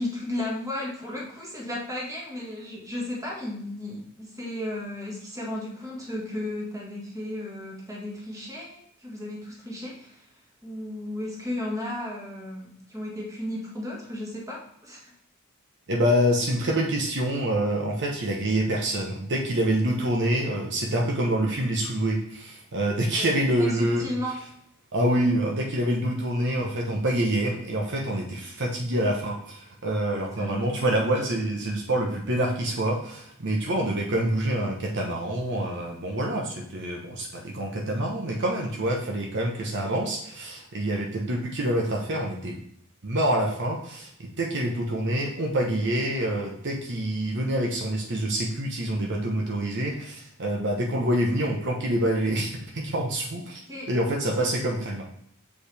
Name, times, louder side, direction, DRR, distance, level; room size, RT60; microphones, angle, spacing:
voice 1, 0.0-10.2 10.6-15.1 23.2-24.4 30.0-30.6 53.7-53.9 54.4-54.5, left 1 dB, 15° right, -3 dB, 1.7 m, -34 dB
voice 2, 15.9-24.1 24.9-42.6 43.0-52.5 52.7-53.6 53.9-55.0, right 1 dB, 55° right, 1 dB, 1.0 m, -26 dB
6.6 x 5.3 x 3.4 m, 0.68 s
head